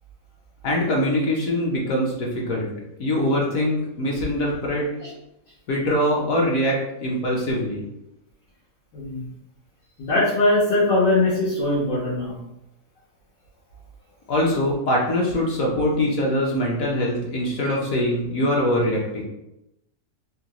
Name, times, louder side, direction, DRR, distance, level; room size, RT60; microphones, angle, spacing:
voice 1, 0.6-2.7 3.0-4.9 5.7-7.8 14.3-19.2, left 1 dB, 60° left, -2 dB, 1.0 m, -23 dB
voice 2, 8.9-9.3 10.0-12.4, left 2 dB, 90° left, -10 dB, 1.8 m, -21 dB
3.8 x 2.4 x 2.9 m, 0.88 s
omnidirectional pair, 1.8 m